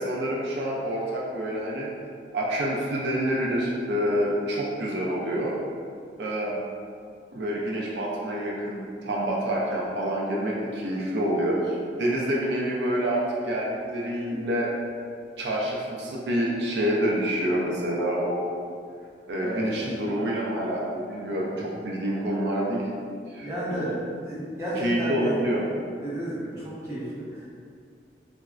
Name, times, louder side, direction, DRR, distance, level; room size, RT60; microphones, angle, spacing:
voice 1, 0.0-1.9 2.3-5.6 6.2-6.6 7.3-14.7 15.4-18.4 19.3-22.9 23.3-23.9 24.8-25.6, equal, 70° right, -4 dB, 0.4 m, -27 dB
voice 2, 19.3-19.8 21.5-21.6 23.4-23.9 24.3-25.4 26.0-27.5, right 1 dB, 15° right, -10 dB, 0.7 m, -32 dB
3.3 x 2.0 x 2.3 m, 2.3 s
head